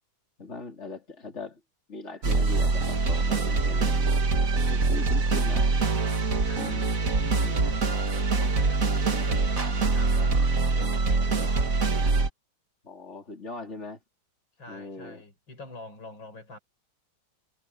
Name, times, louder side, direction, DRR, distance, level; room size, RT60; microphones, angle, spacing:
voice 1, 0.4-1.6 1.9-4.1 4.5-5.7 6.5-7.0 7.4-7.5 11.7-12.1 12.8-14.0 14.7-15.2, left 3 dB, 35° left, 4.6 m, -40 dB
sound 1, 2.2-12.3, right 3 dB, 45° right, 2.3 m, -24 dB
voice 2, 6.5-6.8 7.2-11.0 11.2-11.7 14.6-16.6, left 2 dB, 70° left, 6.5 m, -46 dB
omnidirectional pair, 2.2 m